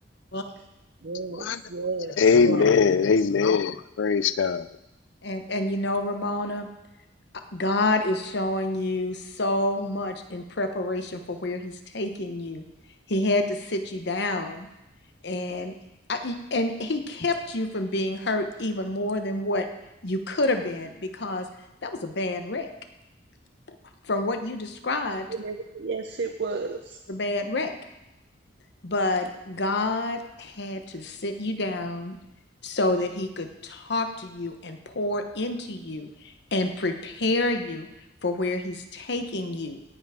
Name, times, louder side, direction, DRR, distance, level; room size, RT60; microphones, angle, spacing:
voice 1, 1.0-2.1 2.4-2.7 25.3-27.0, right 4 dB, 65° right, 5 dB, 0.6 m, -32 dB
voice 2, 2.2-4.7, left 5 dB, 80° left, 15 dB, 0.5 m, -21 dB
voice 3, 5.2-6.7 7.5-12.6 13.1-14.7 15.2-15.7 16.1-19.7 20.0-21.5 21.8-22.7 24.1-25.3 27.1-27.7 28.8-32.2 32.6-37.9 38.2-39.8, left 2 dB, 65° left, 6 dB, 1.1 m, -28 dB
17.5 x 5.9 x 5.0 m, 0.96 s
head